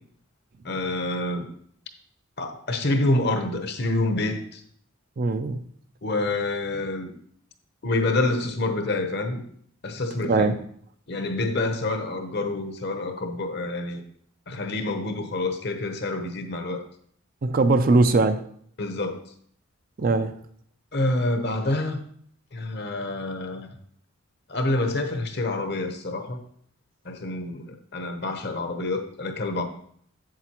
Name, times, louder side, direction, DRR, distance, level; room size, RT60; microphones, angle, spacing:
voice 1, 0.6-1.5 2.4-4.6 6.0-7.1 7.8-9.4 9.8-10.6 11.1-14.0 14.5-16.8 18.8-19.2 20.9-22.0 22.5-23.7 24.5-26.4 27.0-29.6, left 2 dB, 50° left, 6 dB, 0.8 m, -27 dB
voice 2, 5.2-5.6 10.2-10.5 17.4-18.4 20.0-20.3, right 3 dB, 45° right, 9 dB, 0.4 m, -20 dB
7.7 x 7.5 x 2.9 m, 0.62 s
head